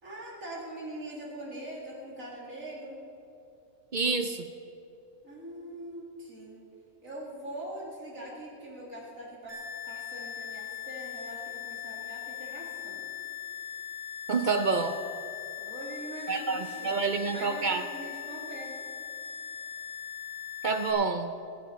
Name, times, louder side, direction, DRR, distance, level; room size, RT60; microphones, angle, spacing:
voice 1, 0.0-3.0 5.2-6.6 7.0-9.6 9.9-13.0 15.6-18.8, right 1 dB, 75° right, -5 dB, 2.9 m, -42 dB
voice 2, 3.9-4.5 14.3-15.0 16.3-17.8 20.6-21.3, right 4 dB, 55° right, 8 dB, 0.5 m, -28 dB
sound 1, 9.5-20.9, left 9 dB, 70° left, 3.2 m, -40 dB
19.5 x 10.5 x 4.2 m, 2.8 s
omnidirectional pair, 1.4 m